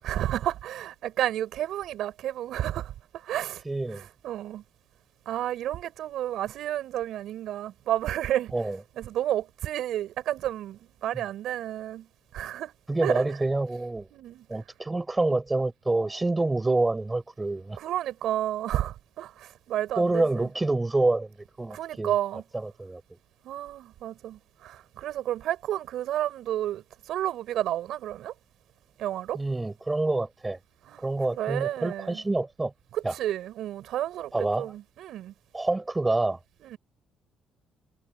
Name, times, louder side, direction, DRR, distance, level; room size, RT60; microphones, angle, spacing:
voice 1, 0.0-2.9 3.2-3.6 4.0-4.6 5.3-8.5 9.0-12.1 12.3-12.7 13.0-13.2 14.1-14.5 17.8-20.5 21.7-22.4 23.4-28.3 29.0-29.4 30.9-32.2 32.9-35.3 36.6-36.8, right 12 dB, 70° right, 7.5 m, -31 dB
voice 2, 3.6-4.0 8.5-8.8 12.9-14.1 14.5-17.8 20.0-22.1 22.5-23.0 29.3-30.6 31.0-32.7 33.0-33.1 34.3-34.7 35.5-36.4, right 2 dB, 15° right, 7.4 m, -27 dB
cardioid pair, 125°, 0 cm